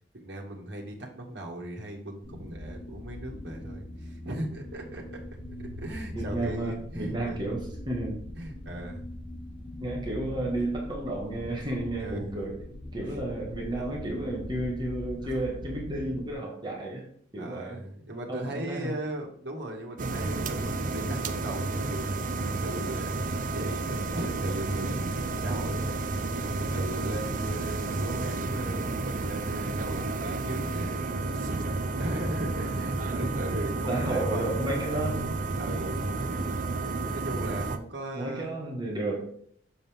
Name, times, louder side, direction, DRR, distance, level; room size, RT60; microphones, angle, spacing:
voice 1, 0.1-5.2 5.6-7.4 8.4-9.1 12.0-12.3 13.1-13.2 13.5-13.9 15.2-15.4 17.4-31.6 31.9-34.6 35.6-36.1 37.1-38.6, right 1 dB, 65° right, 0 dB, 1.8 m, -38 dB
sound 1, 2.2-16.3, left 1 dB, 50° left, 2.6 m, -41 dB
voice 2, 6.1-8.2 9.8-12.6 12.9-17.1 17.3-17.8 18.3-18.9 26.3-26.6 33.2-33.5 33.9-35.4 38.1-39.2, right 1 dB, 25° right, -2 dB, 1.7 m, -32 dB
sound 2, 20.0-37.8, right 3 dB, 45° right, 0.6 m, -31 dB
7.0 x 5.4 x 3.6 m, 0.63 s
head